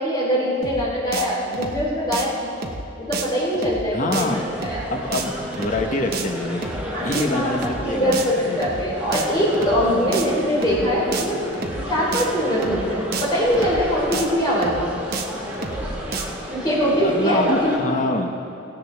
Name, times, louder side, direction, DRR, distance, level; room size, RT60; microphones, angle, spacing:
voice 1, 0.0-2.4 3.0-4.8 6.9-11.4 11.9-14.9 16.5-17.7, equal, 20° left, -7 dB, 4.0 m, -22 dB
sound 1, 0.6-0.8 1.1-1.3 1.5-1.8 2.1-2.2 2.6-2.8 3.1-3.3 3.5-3.8 4.1-4.3 4.6-4.8 5.1-5.3 5.5-5.8 6.1-6.3 6.6-6.8 7.1-7.2 7.5-7.8 8.1-8.3 8.6-8.8 9.1-9.3 9.5-9.8 10.1-10.3 10.6-10.8 11.1-11.3 11.5-11.8 12.1-12.3 12.6-12.8 13.1-13.3 13.5-13.8 14.1-14.2 14.6-14.8 15.1-15.3 15.5-15.8 16.1-16.2, right 4 dB, 45° right, 1.0 m, -30 dB
voice 2, 3.9-4.4 4.9-6.7 7.0-8.6 10.0-10.2 17.0-18.3, left 2 dB, 35° left, 3 dB, 1.1 m, -25 dB
sound 2, 4.3-17.8, equal, 10° right, 2.0 m, -32 dB
17.5 x 16.5 x 3.5 m, 2.7 s
head